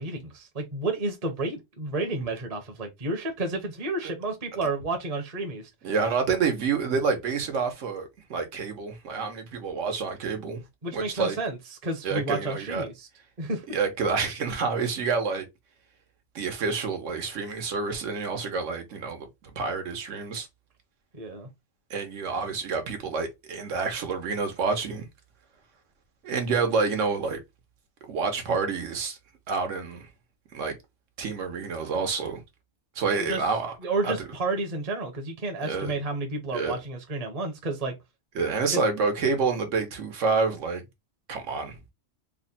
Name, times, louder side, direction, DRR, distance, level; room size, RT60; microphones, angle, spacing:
voice 1, 0.0-5.7 10.8-13.1 13.4-13.6 21.2-21.5 33.2-33.4 33.8-37.9 38.7-38.8, right 2 dB, 40° right, 0.7 m, -31 dB
voice 2, 5.8-10.6 10.9-11.4 12.0-12.8 13.7-15.5 16.3-20.5 21.9-25.1 26.2-27.4 28.1-29.2 29.5-30.1 30.5-30.8 31.2-32.4 32.9-33.7 34.0-34.1 35.6-35.9 36.5-36.8 38.3-40.8 41.3-41.8, right 4 dB, 85° right, 1.2 m, -28 dB
3.4 x 2.1 x 4.0 m
omnidirectional pair, 1.3 m